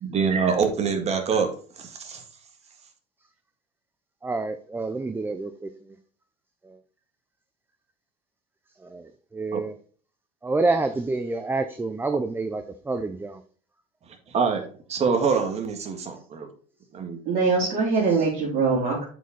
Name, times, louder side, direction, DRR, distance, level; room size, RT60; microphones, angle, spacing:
voice 1, 0.0-1.5 1.8-2.2 9.5-9.6 14.3-14.6 14.9-16.5 16.9-17.2, right 5 dB, 40° right, 5 dB, 1.8 m, -24 dB
voice 2, 4.2-6.0 6.6-6.8 8.8-9.7 10.4-13.4 18.1-18.3, right 3 dB, 10° right, 8 dB, 0.6 m, -28 dB
voice 3, 17.2-19.0, right 4 dB, 55° right, -7 dB, 3.3 m, -22 dB
7.8 x 5.2 x 4.0 m, 0.43 s
supercardioid pair, 105°, 17 cm